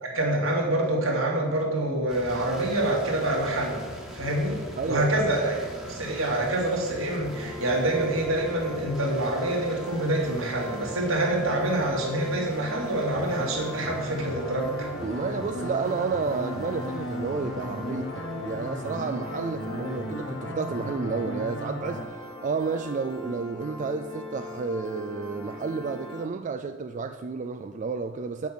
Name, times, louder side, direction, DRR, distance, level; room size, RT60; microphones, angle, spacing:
voice 1, 0.0-3.8 4.1-5.6 5.9-14.9, right 1 dB, 80° right, 2.4 m, -26 dB
sound 1, 2.1-20.7, equal, ahead, 1.4 m, -44 dB
voice 2, 4.8-5.2 15.0-28.5, right 4 dB, 40° right, 0.3 m, -31 dB
Piano, 7.2-26.3, left 1 dB, 20° left, 1.4 m, -41 dB
sound 2, 13.1-22.0, left 1 dB, 60° left, 1.1 m, -35 dB
7.2 x 5.8 x 7.5 m
head